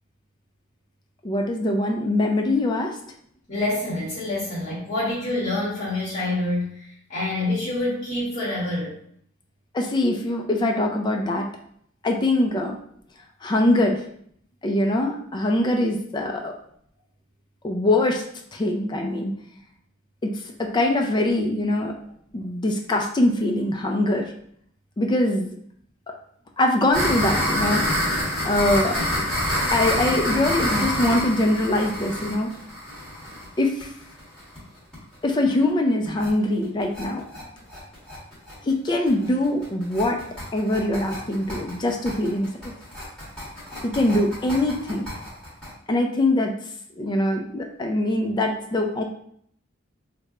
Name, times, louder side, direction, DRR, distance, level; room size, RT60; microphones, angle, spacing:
voice 1, 1.2-3.0 9.7-11.5 12.0-12.8 13.4-14.0 14.6-16.5 17.6-18.2 18.5-19.3 20.2-21.9 22.3-24.3 25.0-25.5 26.6-27.8 28.4-29.0 29.7-32.5 33.6-33.9 35.2-37.3 38.6-40.2 40.5-42.7 43.8-45.1 45.9-46.5 47.0-49.0, left 1 dB, 20° left, 2 dB, 0.4 m, -23 dB
voice 2, 3.5-8.9, left 2 dB, 40° left, -9 dB, 1.3 m, -27 dB
sound 1, 26.9-34.6 34.9-35.0 35.3-35.4 35.7-35.8 36.1-36.3 36.6-45.7, equal, 5° left, 1.4 m, -27 dB
3.3 x 2.1 x 3.7 m, 0.66 s
head